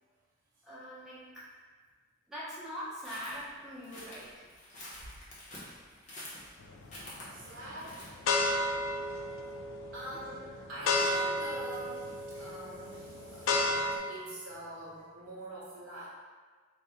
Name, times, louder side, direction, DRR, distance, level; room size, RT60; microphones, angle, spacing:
voice 1, 0.6-1.4 2.3-4.5, equal, 5° right, -10 dB, 0.8 m, -43 dB
sound 1, 3.0-8.3, left 1 dB, 35° left, 0.9 m, -48 dB
sound 2, 6.6-7.1 7.6-14.0, left 2 dB, 80° left, 0.4 m, -32 dB
voice 2, 7.3-8.0 9.9-16.1, right 1 dB, 85° right, -8 dB, 0.7 m, -45 dB
3.5 x 2.4 x 4.2 m, 1.5 s
head